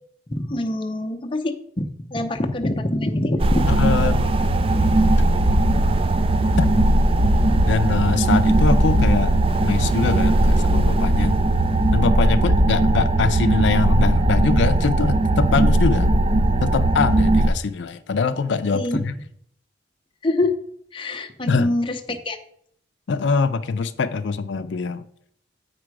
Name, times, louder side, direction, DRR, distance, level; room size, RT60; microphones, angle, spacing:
voice 1, 0.3-3.7 18.7-19.0 20.2-20.5 20.9-22.4, left 1 dB, 30° left, 4 dB, 0.6 m, -25 dB
sound 1, 3.4-17.5, right 1 dB, 30° right, 0.4 m, -18 dB
voice 2, 3.7-4.3 6.6-6.8 7.7-11.4 11.9-16.2 16.6-19.1 21.5-21.7 23.1-25.1, left 4 dB, 75° left, 10 dB, 0.4 m, -23 dB
8.3 x 5.0 x 4.7 m, 0.68 s
head